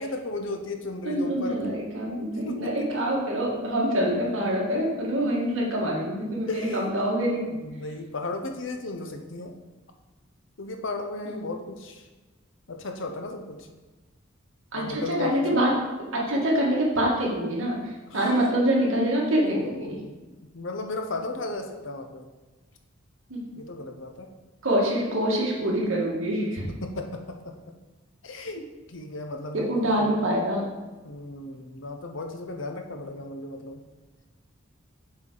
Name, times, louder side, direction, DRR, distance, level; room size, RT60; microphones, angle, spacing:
voice 1, 0.0-1.6 2.5-3.0 6.5-6.9 7.4-9.5 10.6-12.0 12.7-13.7 14.7-15.6 18.1-18.2 19.4-20.3 20.5-22.3 23.5-24.3 26.3-27.5 28.2-30.2 31.0-33.8, left 2 dB, 65° left, 4 dB, 0.8 m, -35 dB
voice 2, 1.0-7.4 11.3-11.4 14.7-15.7 16.1-17.8 18.1-20.0 23.3-23.4 24.6-26.6 29.5-30.6, right 1 dB, 80° right, -3 dB, 1.8 m, -25 dB
7.3 x 4.7 x 3.9 m, 1.2 s
head